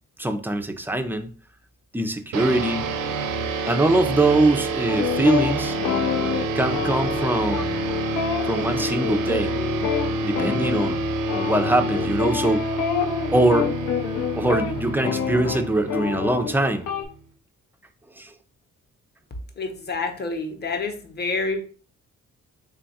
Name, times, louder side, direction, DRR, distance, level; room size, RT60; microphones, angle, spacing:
voice 1, 0.2-1.3 1.9-2.9 3.7-5.8 6.5-7.8 8.4-9.5 10.2-11.0 11.3-12.7 13.3-13.7 14.4-16.9 18.2-18.3, right 2 dB, 5° right, 7 dB, 0.3 m, -22 dB
sound 1, 2.3-17.1, right 2 dB, 70° right, 0.6 m, -28 dB
sound 2, 4.9-17.0, left 8 dB, 85° left, 0.6 m, -28 dB
voice 2, 19.6-21.6, left 3 dB, 30° left, 5 dB, 0.7 m, -28 dB
3.4 x 2.3 x 4.0 m, 0.41 s
cardioid pair, 105°, 33 cm